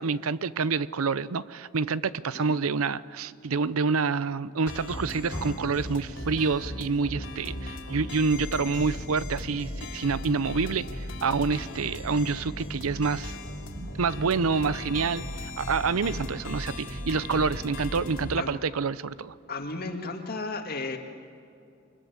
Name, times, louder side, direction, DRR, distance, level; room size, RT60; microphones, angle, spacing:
voice 1, 0.0-13.3 13.8-19.3, right 4 dB, 90° right, 17 dB, 0.6 m, -27 dB
sound 1, 4.7-18.4, left 1 dB, 60° left, 3.2 m, -37 dB
Car, 5.3-8.5 8.9-10.3 10.8-10.9 11.5-11.6, equal, 65° right, 5.2 m, -44 dB
voice 2, 19.5-21.0, left 3 dB, 45° left, 4 dB, 2.1 m, -34 dB
24.5 x 21.5 x 8.1 m, 2.5 s
head